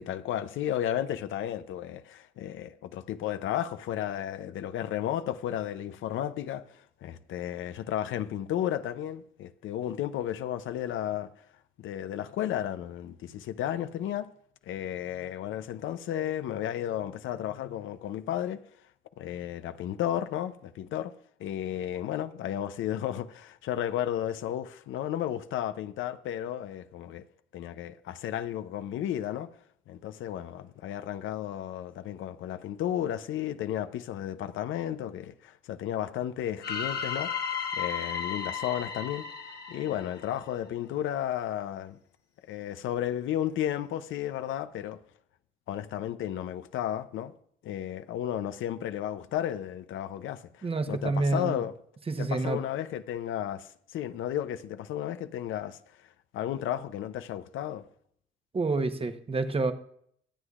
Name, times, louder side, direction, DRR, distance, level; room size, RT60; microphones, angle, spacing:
voice 1, 0.0-11.3 11.8-14.3 14.7-18.6 19.2-21.1 21.4-27.2 27.5-29.5 29.9-37.3 37.8-39.3 39.7-42.0 42.5-45.0 45.7-47.3 47.6-51.7 52.2-55.8 56.3-57.9, left 11 dB, 80° left, 0.6 m, -33 dB
sound 1, 36.6-40.7, left 6 dB, 55° left, 1.3 m, -34 dB
voice 2, 50.6-51.6 52.1-52.6 58.5-59.7, right 3 dB, 30° right, 1.0 m, -28 dB
23.0 x 7.9 x 2.4 m
cardioid pair, 90°, 20 cm